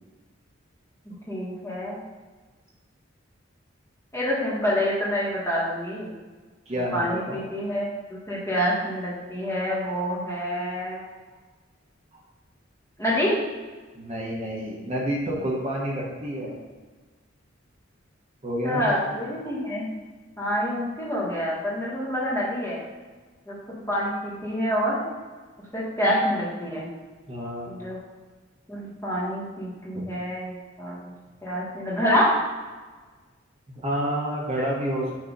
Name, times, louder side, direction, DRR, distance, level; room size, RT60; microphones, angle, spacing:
voice 1, 1.0-2.0 4.1-6.1 6.9-7.9 8.3-11.0 13.0-13.3 18.6-19.9 20.4-22.8 23.5-25.0 25.7-26.9 27.7-28.0 28.7-31.0 31.4-32.3, equal, 15° left, -6 dB, 1.5 m, -27 dB
voice 2, 6.7-7.4 13.9-16.6 18.4-19.2 27.3-27.7 29.9-30.0 33.8-35.1, equal, 35° right, -4 dB, 1.0 m, -29 dB
6.1 x 2.9 x 5.2 m, 1.3 s
head